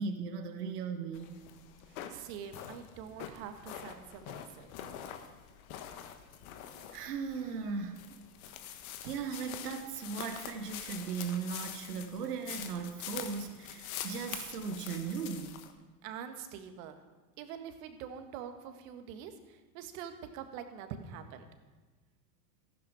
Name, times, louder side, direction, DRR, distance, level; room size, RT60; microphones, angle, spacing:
voice 1, 0.0-1.3 6.9-8.2 9.0-15.6, right 5 dB, 75° right, 7 dB, 1.3 m, -37 dB
sound 1, 1.1-15.7, left 9 dB, 60° left, 1.5 m, -45 dB
voice 2, 1.9-4.7 16.0-17.0 17.4-21.5, right 8 dB, 60° right, 7 dB, 1.7 m, -45 dB
14.5 x 12.0 x 4.9 m, 1.3 s
hypercardioid pair, 85°, 47 cm